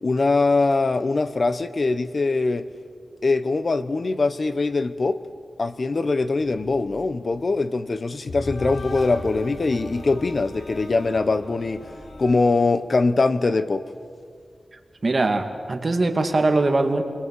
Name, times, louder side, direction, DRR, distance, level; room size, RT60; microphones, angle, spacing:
voice 1, 0.0-2.6 3.2-5.2 5.6-11.8 12.2-13.9, left 3 dB, 50° left, 1.0 m, -22 dB
sound 1, 6.4-12.3, left 1 dB, 80° left, 6.9 m, -37 dB
voice 2, 15.0-17.0, right 2 dB, 40° right, 2.3 m, -21 dB
29.0 x 22.5 x 8.4 m
wide cardioid pair, 110°, 0 cm